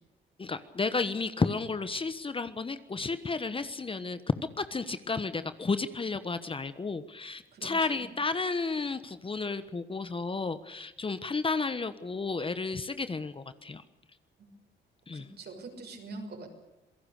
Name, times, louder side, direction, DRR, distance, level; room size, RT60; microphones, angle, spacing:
voice 1, 0.4-4.2 4.6-13.8 15.1-15.3, left 4 dB, 25° left, 12 dB, 1.3 m, -32 dB
voice 2, 7.5-8.1 15.1-16.5, right 3 dB, 55° right, 4 dB, 5.9 m, -44 dB
27.0 x 17.5 x 6.7 m, 1.0 s
cardioid pair, 90°, 20 cm